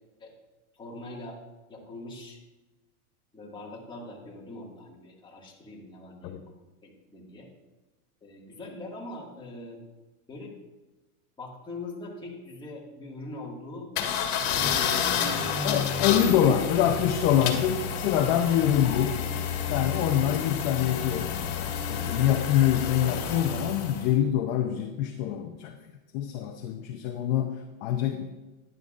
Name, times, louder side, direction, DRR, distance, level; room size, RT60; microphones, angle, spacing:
voice 1, 0.7-1.4 1.7-2.4 3.3-6.4 6.8-7.5 8.2-9.8 10.3-10.6 11.4-13.9 14.2-15.4 16.0-16.7 18.1-18.3 20.2-20.5, left 2 dB, 10° left, -4 dB, 1.9 m, -41 dB
sound 1, 14.0-24.1, left 7 dB, 55° left, 1.9 m, -30 dB
voice 2, 15.6-19.2 19.7-25.8 26.1-28.3, left 10 dB, 35° left, 5 dB, 0.6 m, -25 dB
12.0 x 11.0 x 2.5 m, 1.1 s
supercardioid pair, 145°, 44 cm